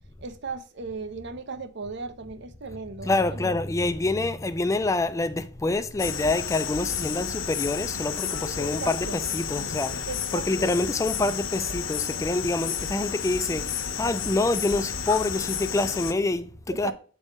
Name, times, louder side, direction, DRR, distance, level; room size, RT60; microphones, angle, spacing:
voice 1, 0.2-3.6 8.6-9.2 10.1-10.7 16.7-16.9, right 4 dB, 60° right, 0.8 m, -36 dB
voice 2, 3.0-16.9, left 2 dB, 15° left, 0.3 m, -27 dB
sound 1, 6.0-16.1, left 7 dB, 70° left, 1.0 m, -32 dB
8.2 x 3.5 x 5.3 m
head